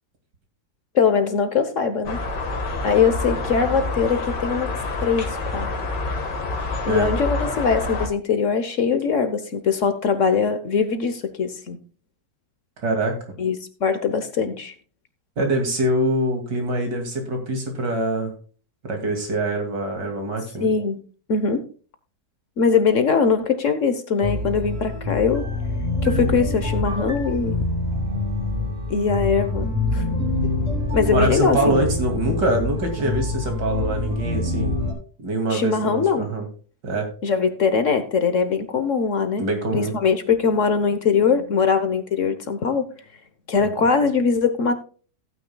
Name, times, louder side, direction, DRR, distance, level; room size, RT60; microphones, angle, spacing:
voice 1, 0.9-2.2 2.8-4.7 5.0-5.7 6.9-11.8 13.4-14.7 20.6-21.0 21.3-21.6 22.6-25.4 26.0-27.6 28.9-30.0 30.9-31.8 35.5-36.3 37.2-39.4 39.7-42.8 43.5-44.7, left 5 dB, 50° left, 9 dB, 1.3 m, -21 dB
sound 1, 2.0-8.1, left 3 dB, 80° left, 2.3 m, -27 dB
voice 2, 12.8-13.1 15.4-18.3 18.8-20.7 31.1-34.7 35.2-36.5 36.8-37.1 39.4-39.9 43.8-43.9, right 1 dB, 80° right, 3 dB, 3.1 m, -24 dB
sound 2, 24.2-34.9, left 2 dB, 45° right, 4.2 m, -25 dB
16.0 x 9.1 x 2.3 m, 0.39 s
omnidirectional pair, 1.8 m